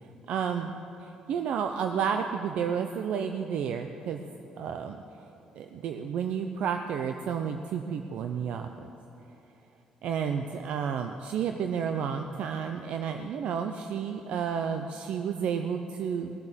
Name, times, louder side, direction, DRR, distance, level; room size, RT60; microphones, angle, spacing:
voice 1, 0.3-0.7 1.0-4.2 4.6-5.0 5.6-8.9 10.0-16.3, right 7 dB, 70° right, 6 dB, 0.6 m, -31 dB
19.0 x 7.8 x 7.5 m, 3.0 s
cardioid pair, 120°, 2 cm